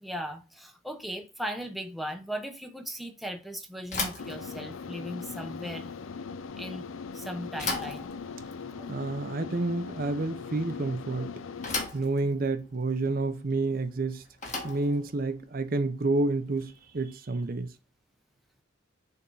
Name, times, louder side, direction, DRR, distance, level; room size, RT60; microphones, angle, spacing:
voice 1, 0.0-5.9 6.6-6.9 7.1-8.1 8.7-8.9, equal, ahead, 0.7 m, -38 dB
Bicycle / Thump thud, 3.8-16.9, left 3 dB, 35° left, 1.8 m, -39 dB
sound 1, 4.2-11.9, left 5 dB, 85° left, 0.5 m, -40 dB
voice 2, 8.9-11.3 11.9-14.2 14.6-17.7, right 2 dB, 45° right, 0.6 m, -29 dB
6.9 x 3.6 x 3.8 m
head